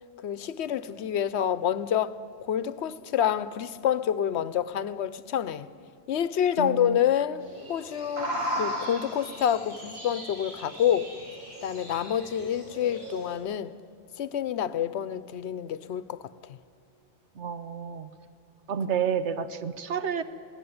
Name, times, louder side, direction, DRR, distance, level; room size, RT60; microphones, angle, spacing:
voice 1, 0.2-5.7 6.1-11.1 11.6-13.7 14.2-16.6, left 9 dB, 70° left, 1.0 m, -28 dB
voice 2, 6.6-7.0 17.4-18.1 18.7-20.2, right 7 dB, 75° right, 1.2 m, -30 dB
sound 1, 7.4-13.4, equal, 45° right, 6.2 m, -37 dB
21.5 x 17.0 x 9.6 m
omnidirectional pair, 1.2 m